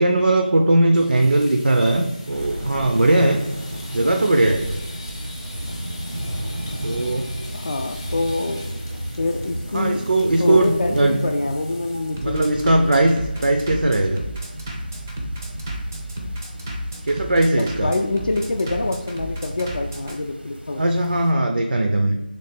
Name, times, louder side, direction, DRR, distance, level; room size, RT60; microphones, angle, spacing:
voice 1, 0.0-3.4 3.9-4.8 6.8-7.3 9.7-11.2 12.2-14.2 17.0-17.9 20.8-22.2, right 1 dB, 70° right, 3 dB, 0.5 m, -19 dB
sound 1, 0.9-12.5 12.8-13.1 13.4-13.5 13.9-14.3, left 2 dB, 20° left, 0.7 m, -42 dB
sound 2, 2.3-21.3, right 1 dB, 85° right, 0.8 m, -34 dB
Bass drum, 4.9-20.2, right 1 dB, 15° right, 0.4 m, -34 dB
voice 2, 7.5-8.8 9.2-10.0 10.4-12.9 17.4-20.8 22.1-22.2, left 2 dB, 60° left, 2 dB, 0.4 m, -26 dB
3.2 x 3.2 x 4.3 m, 1.1 s
figure-of-eight pair, 170°, 5 cm